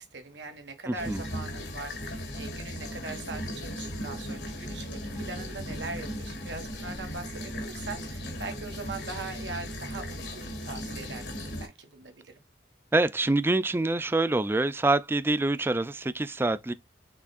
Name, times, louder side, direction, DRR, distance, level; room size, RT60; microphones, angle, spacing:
voice 1, 0.0-12.4, right 3 dB, 85° right, 1.3 m, -41 dB
voice 2, 0.9-1.2 12.9-16.7, right 2 dB, 15° right, 0.3 m, -26 dB
sound 1, 1.0-11.7, equal, 75° left, 1.3 m, -37 dB
6.0 x 3.4 x 2.2 m
head